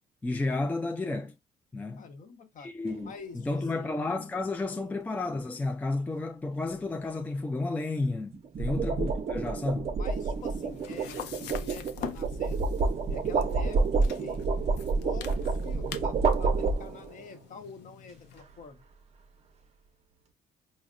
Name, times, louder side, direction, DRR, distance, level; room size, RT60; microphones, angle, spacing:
voice 1, 0.2-1.3 1.7-2.0 2.6-9.9, left 2 dB, 10° left, 0.3 m, -32 dB
voice 2, 2.0-2.7 3.1-3.9 4.7-4.9 8.6-9.1 10.0-12.7 13.1-14.5 14.9-18.8, left 4 dB, 50° left, 0.8 m, -47 dB
sound 1, 2.9-3.2 8.3-17.2, right 4 dB, 40° right, 0.6 m, -29 dB
sound 2, 10.1-18.4, left 10 dB, 85° left, 0.5 m, -45 dB
5.1 x 2.1 x 2.5 m
cardioid pair, 110°, 17 cm